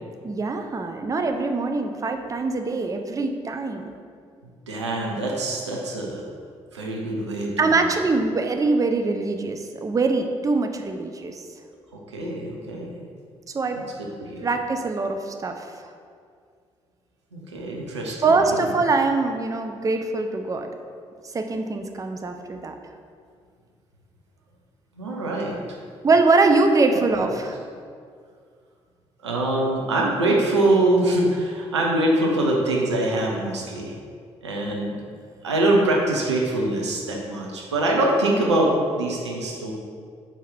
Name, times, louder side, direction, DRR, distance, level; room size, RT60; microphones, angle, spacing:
voice 1, 0.2-3.8 7.6-11.5 13.5-13.8 14.4-15.7 18.2-20.7 21.3-22.7 26.0-27.6, right 3 dB, 25° right, 5 dB, 0.5 m, -23 dB
voice 2, 4.7-6.3 6.7-7.8 11.9-13.0 14.2-14.5 17.3-18.7 25.0-25.6 29.2-33.9 34.4-35.0 35.4-39.7, right 1 dB, 85° right, -1 dB, 0.7 m, -24 dB
4.6 x 4.3 x 5.3 m, 2.1 s
figure-of-eight pair, 40°, 14 cm